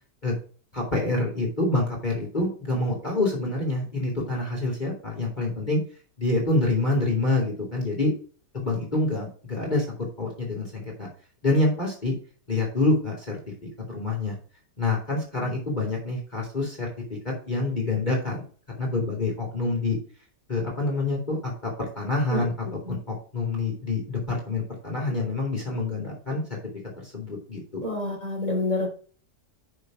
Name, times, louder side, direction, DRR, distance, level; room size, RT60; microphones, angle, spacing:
voice 1, 0.7-5.8 6.2-8.1 8.5-9.9 10.2-11.1 11.4-12.1 12.5-13.4 13.9-14.3 14.8-16.9 17.5-18.4 18.8-20.0 20.5-22.5 22.9-26.4 27.0-27.8, left 2 dB, 25° left, -2 dB, 2.5 m, -26 dB
voice 2, 27.8-28.9, left 2 dB, 20° right, -3 dB, 3.3 m, -27 dB
6.4 x 5.8 x 5.9 m, 0.41 s
omnidirectional pair, 1.8 m